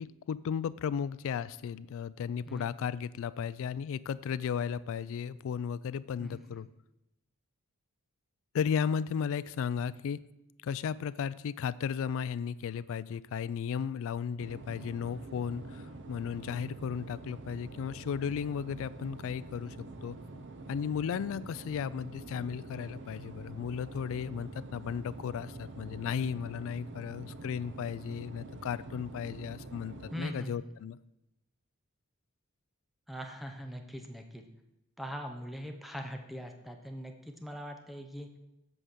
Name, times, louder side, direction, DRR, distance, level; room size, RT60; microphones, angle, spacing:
voice 1, 0.0-6.7 8.5-10.2 10.6-20.2 20.7-31.0, left 7 dB, 65° left, 18 dB, 0.3 m, -35 dB
voice 2, 6.2-6.6 30.1-30.7 33.1-34.4 35.0-38.3, equal, ahead, 4 dB, 0.7 m, -41 dB
sound 1, 14.4-30.2, right 2 dB, 55° right, 0.7 m, -46 dB
7.8 x 5.0 x 6.1 m, 0.90 s
head